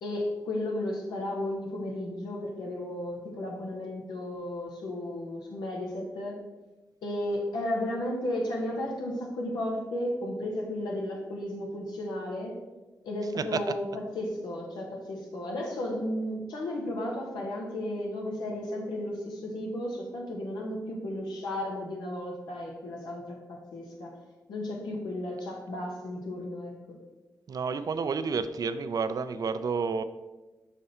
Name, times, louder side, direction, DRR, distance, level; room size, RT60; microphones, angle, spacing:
voice 1, 0.0-6.4 7.0-12.5 13.0-24.2 24.5-27.0, left 1 dB, 85° left, -1 dB, 1.3 m, -34 dB
voice 2, 27.5-30.0, right 5 dB, 60° right, 11 dB, 0.5 m, -30 dB
5.5 x 4.9 x 4.3 m, 1.1 s
supercardioid pair, 45°, 7 cm